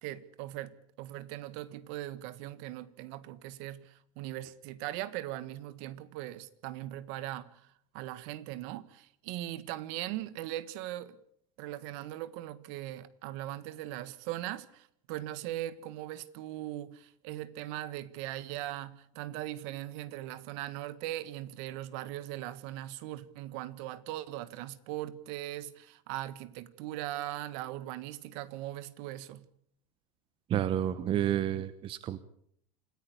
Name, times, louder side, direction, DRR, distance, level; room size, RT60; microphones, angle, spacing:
voice 1, 0.0-7.7 7.9-11.2 11.6-29.5, right 14 dB, 55° right, 1.5 m, -40 dB
voice 2, 30.5-32.2, right 11 dB, 30° right, 1.0 m, -30 dB
27.0 x 14.5 x 8.5 m
supercardioid pair, 150°, 18 cm